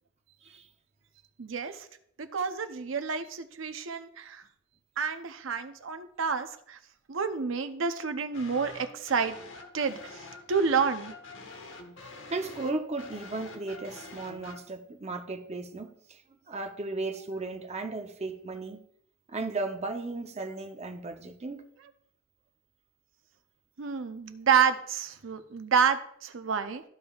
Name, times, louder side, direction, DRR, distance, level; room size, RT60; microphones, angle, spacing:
voice 1, 1.4-1.9 2.2-4.4 5.0-6.8 7.1-9.4 9.7-10.2 10.5-11.1 23.8-26.8, right 6 dB, 80° right, 0.7 m, -29 dB
sound 1, 8.3-14.6, left 3 dB, 70° left, 1.0 m, -46 dB
voice 2, 12.3-18.8 19.3-21.7, right 3 dB, 35° right, 0.7 m, -35 dB
13.5 x 5.1 x 2.4 m
head